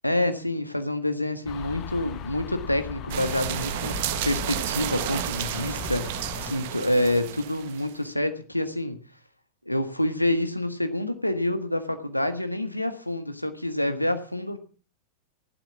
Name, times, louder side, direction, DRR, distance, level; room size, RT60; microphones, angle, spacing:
voice 1, 0.0-4.0 4.2-9.0 9.6-14.6, left 1 dB, 85° left, 8 dB, 1.6 m, -27 dB
sound 1, 1.5-6.5, left 9 dB, 35° left, 1.1 m, -38 dB
sound 2, 3.1-7.9, right 13 dB, 50° right, 1.2 m, -32 dB
14.5 x 12.0 x 6.0 m, 0.39 s
figure-of-eight pair, 90°, 0 cm